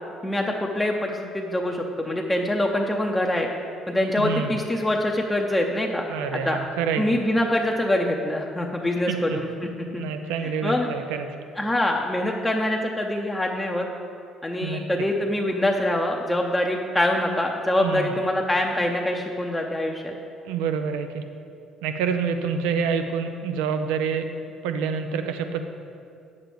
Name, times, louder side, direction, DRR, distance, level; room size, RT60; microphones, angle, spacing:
voice 1, 0.2-3.5 3.9-6.0 6.3-6.6 7.0-10.0 10.6-10.9 11.6-13.9 14.4-20.1, left 1 dB, 15° left, 0 dB, 0.7 m, -24 dB
voice 2, 4.2-4.6 6.1-7.2 9.1-9.4 9.9-11.3 14.6-14.8 17.8-18.2 20.4-21.3 21.8-24.3 24.6-25.6, right 6 dB, 85° right, 8 dB, 0.5 m, -27 dB
8.9 x 7.5 x 3.5 m, 2.4 s
supercardioid pair, 70°, 0 cm